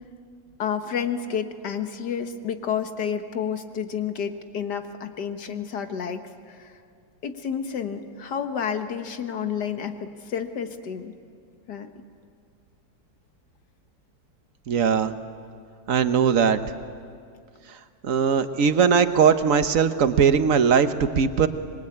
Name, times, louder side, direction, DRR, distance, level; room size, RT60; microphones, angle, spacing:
voice 1, 0.6-6.7 7.2-11.1 11.7-12.0, left 7 dB, 70° left, 7 dB, 1.9 m, -30 dB
voice 2, 14.7-15.1 15.9-16.6 18.0-21.5, right 6 dB, 50° right, 10 dB, 1.3 m, -20 dB
25.0 x 23.0 x 8.6 m, 2.2 s
omnidirectional pair, 1.9 m